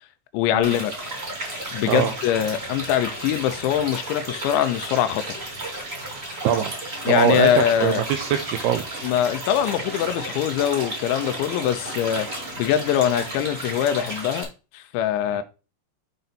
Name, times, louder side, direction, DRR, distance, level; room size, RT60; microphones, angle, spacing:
voice 1, 0.3-0.9 1.7-5.4 7.1-8.0 9.0-12.3 12.6-14.5 14.7-15.4, left 10 dB, 90° left, 3.1 m, -23 dB
sound 1, 0.6-14.4, right 1 dB, 25° right, 1.5 m, -33 dB
sound 2, 2.7-12.5, right 4 dB, 55° right, 3.2 m, -45 dB
voice 2, 6.4-6.7 7.1-9.1 15.3-15.4, right 9 dB, 85° right, 2.3 m, -23 dB
8.0 x 3.9 x 4.2 m
omnidirectional pair, 5.2 m